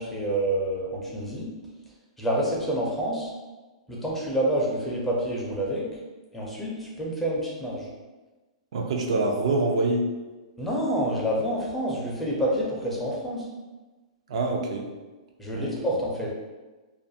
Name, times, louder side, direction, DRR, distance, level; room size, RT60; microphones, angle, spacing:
voice 1, 0.0-1.5 2.2-3.3 3.9-5.8 6.3-7.9 10.6-13.5 15.4-16.3, right 1 dB, 5° left, -4 dB, 0.5 m, -28 dB
voice 2, 8.7-10.1 14.3-14.9 15.5-15.7, right 2 dB, 65° right, 1 dB, 0.4 m, -25 dB
2.4 x 2.4 x 2.6 m, 1.2 s
hypercardioid pair, 155°, 3 cm